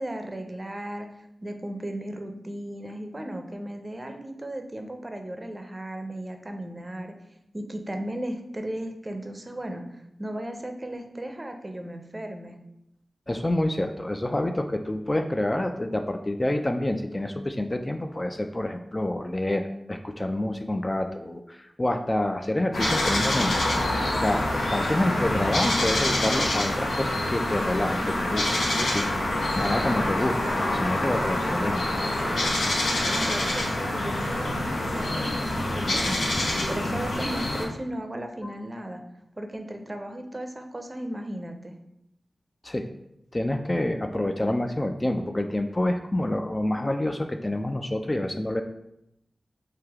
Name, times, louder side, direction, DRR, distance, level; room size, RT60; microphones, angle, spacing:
voice 1, 0.0-7.2 7.5-9.8 10.2-12.6 33.0-39.0 39.4-41.8, right 1 dB, 30° right, 5 dB, 0.5 m, -36 dB
voice 2, 13.3-23.8 24.2-29.1 29.6-31.8 38.4-38.5 42.6-42.9 43.3-48.6, left 1 dB, 30° left, 5 dB, 0.3 m, -28 dB
sound 1, 22.7-37.7, left 1 dB, 85° left, 0.6 m, -26 dB
3.3 x 2.8 x 3.5 m, 0.82 s
cardioid pair, 50°, 0 cm